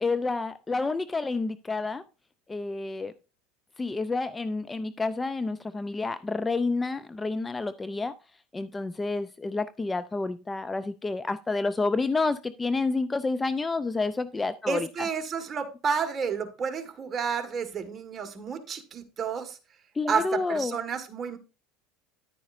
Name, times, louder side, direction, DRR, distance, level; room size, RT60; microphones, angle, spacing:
voice 1, 0.0-2.0 2.5-3.1 3.8-8.1 8.5-15.1 20.0-20.8, left 3 dB, 15° left, 0.4 m, -29 dB
voice 2, 14.7-19.6 20.1-21.4, right 6 dB, 30° right, 1.7 m, -31 dB
10.5 x 9.3 x 2.6 m
supercardioid pair, 105°, 0 cm